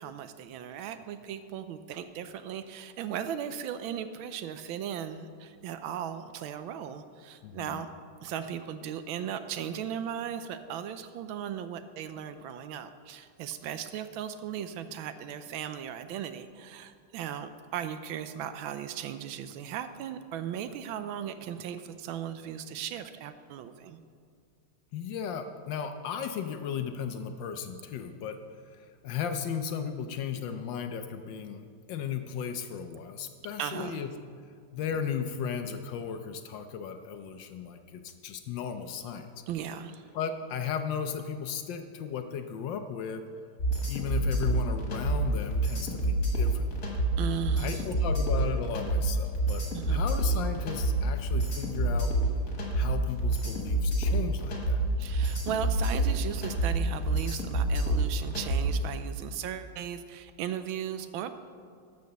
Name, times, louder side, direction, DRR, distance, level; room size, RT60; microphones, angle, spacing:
voice 1, 0.0-7.9 8.2-24.0 33.6-34.0 39.5-40.1 47.2-47.8 49.7-50.1 55.0-61.3, right 9 dB, 80° right, 10 dB, 1.3 m, -37 dB
voice 2, 7.4-7.8 24.9-28.4 28.7-31.6 31.9-34.1 34.7-39.3 40.1-43.3 43.9-46.7 47.6-52.1 52.7-54.8, left 7 dB, 70° left, 7 dB, 1.2 m, -35 dB
sound 1, 43.6-58.8, right 2 dB, 50° left, 2.2 m, -28 dB
12.5 x 5.2 x 6.7 m, 2.2 s
omnidirectional pair, 2.3 m